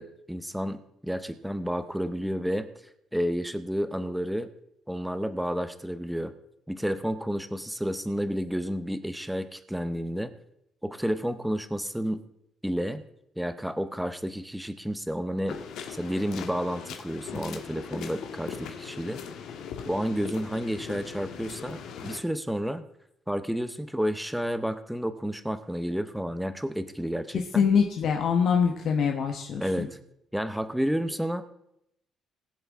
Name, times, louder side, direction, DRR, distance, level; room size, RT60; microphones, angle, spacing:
voice 1, 0.0-2.7 3.1-4.5 4.9-6.3 6.7-10.3 10.8-12.2 12.6-13.0 13.4-15.6 15.9-19.2 19.8-22.8 23.3-27.7 29.6-30.0 30.3-31.4, equal, ahead, 11 dB, 0.7 m, -31 dB
sound 1, 15.5-22.2, left 7 dB, 75° left, 1.5 m, -39 dB
voice 2, 27.5-29.9, left 6 dB, 55° left, 3 dB, 1.1 m, -24 dB
20.5 x 7.5 x 3.6 m, 0.77 s
cardioid pair, 145°, 0 cm